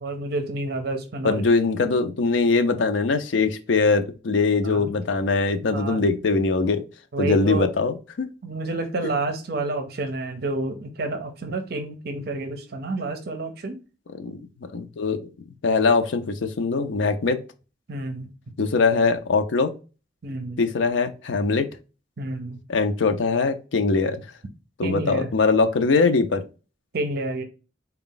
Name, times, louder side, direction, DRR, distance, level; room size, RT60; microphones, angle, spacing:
voice 1, 0.0-1.4 4.6-4.9 5.7-6.0 7.1-7.7 8.4-13.8 17.9-18.3 20.2-20.6 22.2-22.6 24.8-25.3 26.9-27.4, right 2 dB, 55° right, 6 dB, 0.6 m, -29 dB
voice 2, 1.2-6.8 7.2-8.3 14.2-15.3 15.6-17.4 18.6-19.7 20.6-21.7 22.7-24.2 24.8-26.4, left 4 dB, 85° left, 7 dB, 0.5 m, -22 dB
4.0 x 2.3 x 3.8 m, 0.32 s
head